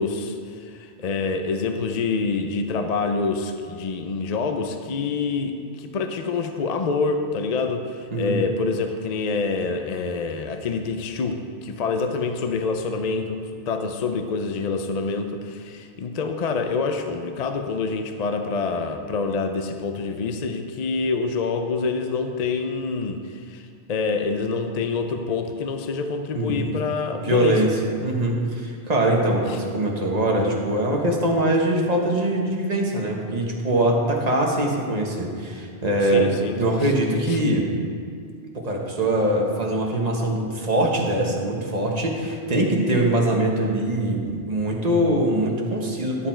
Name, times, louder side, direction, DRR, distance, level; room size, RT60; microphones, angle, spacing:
voice 1, 0.0-27.6 29.5-29.6 36.1-36.9 37.3-37.4, left 4 dB, 50° left, 6 dB, 0.6 m, -26 dB
voice 2, 26.3-26.7 27.2-27.7 28.0-36.3 36.6-37.7 38.5-46.3, right 1 dB, 40° right, -1 dB, 1.3 m, -22 dB
11.5 x 6.8 x 4.4 m, 2.2 s
omnidirectional pair, 1.1 m